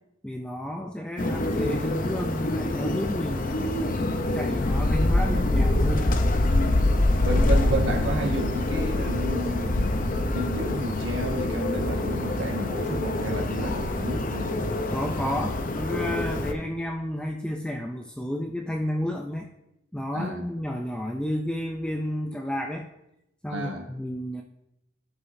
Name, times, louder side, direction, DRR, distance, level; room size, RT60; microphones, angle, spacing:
voice 1, 0.2-4.0 4.3-6.2 13.6-13.7 14.9-19.5 19.9-22.9 23.4-24.4, left 1 dB, 5° left, 2 dB, 0.4 m, -31 dB
sound 1, 1.2-16.5, left 1 dB, 45° left, 0.6 m, -25 dB
voice 2, 7.2-14.5 20.1-20.4 23.5-23.9, right 1 dB, 75° right, 1 dB, 1.5 m, -31 dB
14.0 x 5.7 x 2.6 m, 0.86 s
head